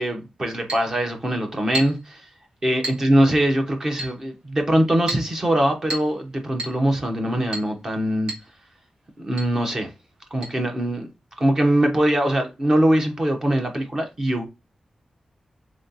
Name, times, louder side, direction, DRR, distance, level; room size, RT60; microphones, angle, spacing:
voice 1, 0.0-2.3 2.6-8.3 9.2-9.9 10.3-11.1 11.4-14.5, right 1 dB, 30° right, 1.0 m, -22 dB
Chink clink, 0.7-0.9 1.7-2.1 2.8-3.1 4.0-4.2 5.1-5.3 5.9-6.2 6.6-6.8 7.5-7.7 8.3-8.5 8.7-8.8 9.4-9.5 10.4-10.5, right 1 dB, 55° right, 1.3 m, -31 dB
3.7 x 3.2 x 4.0 m
wide cardioid pair, 175°, 2 cm